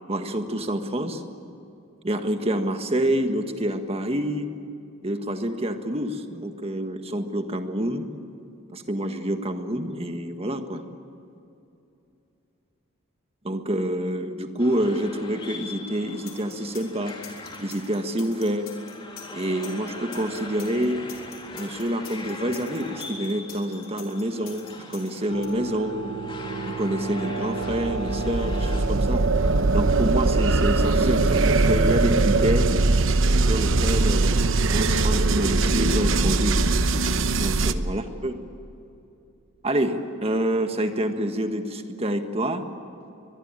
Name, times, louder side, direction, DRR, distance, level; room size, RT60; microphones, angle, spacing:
voice 1, 0.1-1.2 2.0-4.5 5.0-8.1 8.7-10.8 13.4-17.2 17.6-18.7 19.3-21.0 21.5-26.0 26.6-29.2 29.7-32.7 33.4-36.6 37.4-38.3 39.6-42.6, right 1 dB, 30° right, 6 dB, 1.6 m, -27 dB
sound 1, 14.6-28.8, left 2 dB, 25° left, 3.2 m, -41 dB
sound 2, 16.3-25.5, left 9 dB, 45° left, 4.7 m, -45 dB
sound 3, 25.3-37.7, right 3 dB, 65° right, 1.0 m, -22 dB
23.5 x 22.0 x 9.0 m, 2.7 s
head